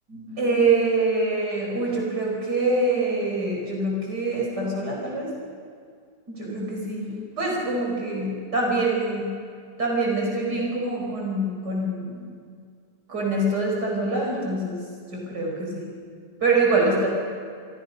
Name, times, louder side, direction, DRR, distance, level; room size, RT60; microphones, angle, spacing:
voice 1, 0.1-5.3 6.3-9.3 9.8-12.2 13.1-14.8 15.1-15.8 16.4-17.1, right 2 dB, 70° right, -2 dB, 5.6 m, -25 dB
27.5 x 26.0 x 5.4 m, 2.1 s
omnidirectional pair, 1.9 m